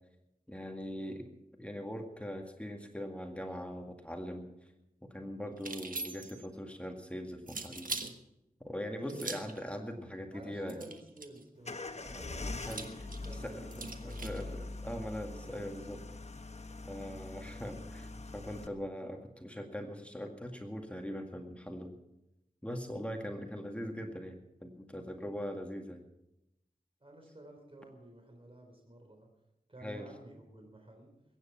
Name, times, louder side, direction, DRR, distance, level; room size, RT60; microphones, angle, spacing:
voice 1, 0.5-1.2 1.6-4.5 5.0-7.9 8.6-10.8 12.1-12.9 13.4-16.0 16.9-22.0 22.6-26.0 29.8-30.1, equal, 10° left, 3 dB, 2.0 m, -41 dB
sound 1, 5.6-6.5 7.5-8.1 9.1-9.6 10.7-11.4 12.6-14.4, right 3 dB, 65° right, 1.4 m, -41 dB
voice 2, 9.0-9.3 10.3-14.7 27.0-29.3 29.7-31.1, right 1 dB, 40° right, 2 dB, 3.8 m, -52 dB
sound 2, 11.6-18.7, left 2 dB, 45° left, 1.1 m, -43 dB
22.0 x 9.7 x 5.9 m, 0.86 s
wide cardioid pair, 65°, 15 cm